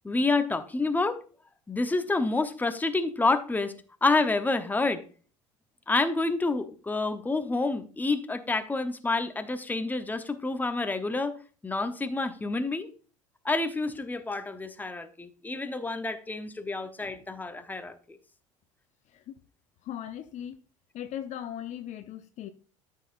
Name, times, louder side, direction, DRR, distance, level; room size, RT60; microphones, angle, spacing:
voice 1, 0.0-1.2 1.7-3.7 4.0-5.0 5.9-11.4 11.6-12.9 13.4-18.2, left 3 dB, 10° left, 0.9 m, -28 dB
voice 2, 19.8-20.6 20.9-22.5, left 10 dB, 45° left, 0.7 m, -38 dB
13.0 x 5.7 x 2.6 m
figure-of-eight pair, 65°, 17 cm